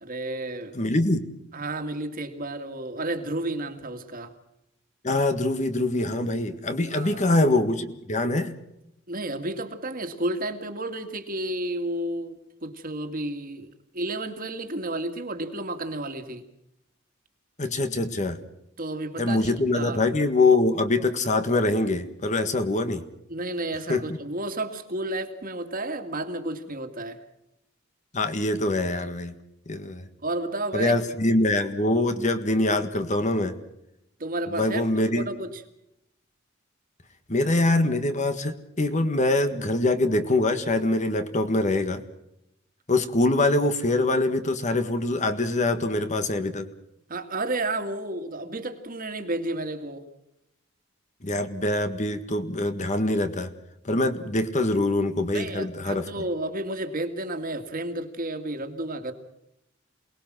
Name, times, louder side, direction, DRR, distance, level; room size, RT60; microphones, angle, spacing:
voice 1, 0.0-0.8 1.5-4.3 6.9-7.3 9.1-16.4 18.8-20.0 23.3-27.2 30.2-31.0 34.2-35.6 47.1-50.0 55.3-59.1, right 2 dB, 45° right, 7 dB, 2.2 m, -32 dB
voice 2, 0.7-1.2 5.0-8.5 17.6-18.4 19.2-23.0 23.9-24.0 28.1-29.3 29.7-30.0 30.7-33.5 34.6-35.3 37.3-42.0 42.9-46.7 51.2-53.5 53.9-56.1, left 2 dB, 35° left, 9 dB, 1.7 m, -24 dB
28.0 x 20.0 x 6.2 m, 0.83 s
head